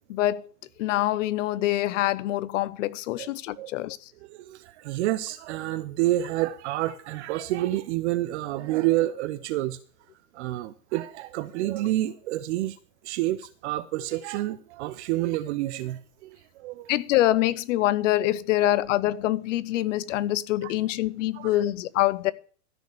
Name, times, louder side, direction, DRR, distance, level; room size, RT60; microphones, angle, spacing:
voice 1, 0.1-0.5 0.8-4.0 16.9-22.3, left 15 dB, 55° left, 0.9 m, -25 dB
voice 2, 4.3-9.8 10.3-12.8 13.0-16.9 20.6-20.7 21.3-21.6, right 15 dB, 45° right, 0.8 m, -29 dB
13.5 x 6.2 x 6.7 m
hypercardioid pair, 115°, 46 cm